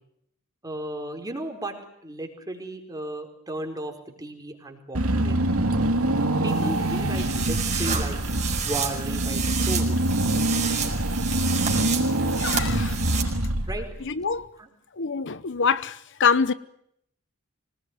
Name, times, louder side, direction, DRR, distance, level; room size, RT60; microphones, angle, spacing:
voice 1, 0.6-1.8 2.0-3.9 4.2-5.4 6.4-8.2 8.6-9.9 13.7-13.9 14.6-14.7, right 1 dB, 20° right, 4.6 m, -34 dB
Car / Engine, 5.0-14.1, right 1 dB, 85° right, 2.8 m, -25 dB
sound 1, 6.5-13.2, right 7 dB, 35° right, 5.1 m, -31 dB
voice 2, 12.4-13.2 14.1-14.4 15.0-16.5, left 6 dB, 60° left, 0.9 m, -25 dB
25.5 x 19.5 x 9.4 m
head